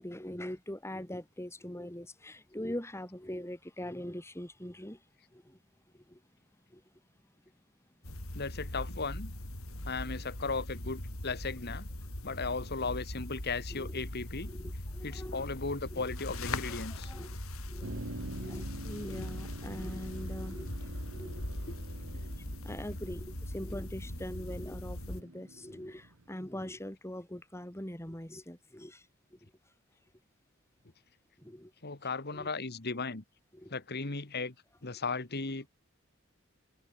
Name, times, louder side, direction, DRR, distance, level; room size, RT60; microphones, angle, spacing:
voice 1, 0.0-5.0 5.3-5.6 5.9-6.2 6.7-6.8 13.7-14.0 14.4-15.4 15.9-16.0 16.9-17.3 17.7-17.9 18.3-21.4 22.1-22.2 22.6-29.0 29.3-29.4 31.4-31.7 32.3-32.5 33.5-33.7, left 1 dB, 15° left, 3.9 m, -42 dB
sound 1, 8.0-25.2, left 1 dB, 80° left, 5.0 m, -40 dB
voice 2, 8.3-9.3 9.8-11.9 12.2-14.5 15.0-17.1 21.7-21.8 31.8-33.2 33.7-34.5 34.8-35.7, left 4 dB, 50° left, 2.0 m, -36 dB
Motor vehicle (road), 17.8-26.8, right 2 dB, 70° right, 2.0 m, -47 dB
head